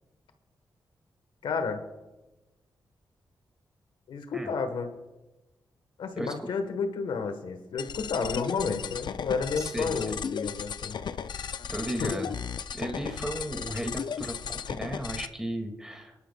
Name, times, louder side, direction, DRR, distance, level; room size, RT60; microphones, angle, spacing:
voice 1, 1.4-1.8 4.1-4.9 6.0-11.0 12.0-12.1, left 5 dB, 90° left, 7 dB, 1.2 m, -31 dB
sound 1, 7.8-15.3, left 7 dB, 65° left, 0.4 m, -35 dB
voice 2, 9.6-10.2 11.3-12.3 12.7-16.1, right 1 dB, 5° right, 3 dB, 2.1 m, -35 dB
20.5 x 11.5 x 2.3 m, 1.1 s
cardioid pair, 60°, 8 cm